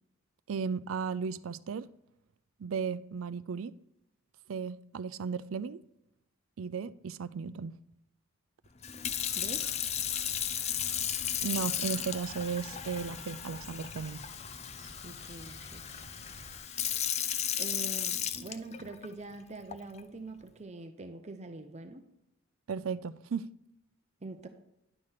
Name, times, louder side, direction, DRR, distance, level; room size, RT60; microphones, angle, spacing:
voice 1, 0.5-1.9 2.6-3.7 4.5-5.8 6.6-7.8 11.4-14.2 22.7-23.5, right 6 dB, 80° right, 0.4 m, -35 dB
Sink (filling or washing) / Fill (with liquid), 8.8-19.1 19.7-20.0, left 9 dB, 35° left, 0.5 m, -35 dB
Chirp tweet, 9.0-16.6, equal, 55° left, 4.1 m, -51 dB
voice 2, 9.3-9.7 15.0-15.8 17.6-22.1 24.2-24.5, right 3 dB, 35° right, 0.7 m, -44 dB
11.0 x 4.9 x 5.7 m
head